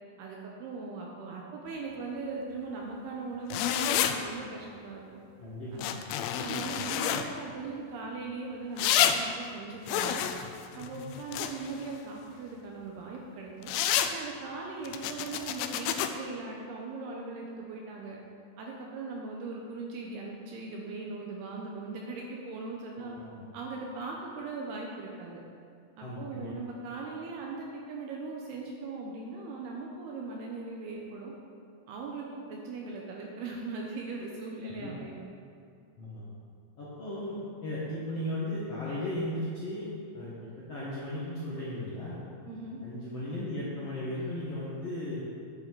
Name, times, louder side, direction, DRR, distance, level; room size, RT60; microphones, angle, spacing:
voice 1, 0.2-5.0 5.7-5.8 6.4-10.2 10.7-13.7 14.1-18.2 18.6-23.1 23.5-25.4 26.0-31.3 31.9-35.2 42.5-42.8, right 3 dB, 75° right, -1 dB, 2.5 m, -39 dB
sound 1, 3.5-4.2 5.8-7.2 8.8-9.2 9.9-11.8 13.6-14.1 14.9-16.1, left 10 dB, 90° left, 3.0 m, -28 dB
voice 2, 5.4-6.1 10.9-11.1 23.0-23.4 26.0-26.5 34.6-34.9 36.0-36.2 36.8-37.4 37.6-40.3 40.7-42.2 42.8-45.2, left 1 dB, 55° left, -9 dB, 1.7 m, -36 dB
10.5 x 8.3 x 4.7 m, 2.4 s
omnidirectional pair, 5.3 m